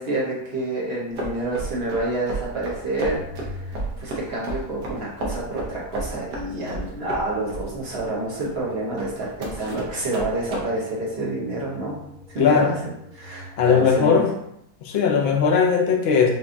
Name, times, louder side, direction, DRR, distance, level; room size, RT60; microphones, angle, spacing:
voice 1, 0.0-12.0 12.3-12.7 13.1-14.2, right 2 dB, 45° right, -5 dB, 0.9 m, -28 dB
sound 1, 1.2-10.6, right 2 dB, 80° right, 1.4 m, -33 dB
Organ, 3.0-14.0, left 2 dB, 60° left, 1.5 m, -45 dB
voice 2, 12.4-12.8 13.6-14.3 14.8-16.3, left 6 dB, 80° left, 0 dB, 0.5 m, -18 dB
5.0 x 2.3 x 2.6 m, 0.77 s
omnidirectional pair, 1.8 m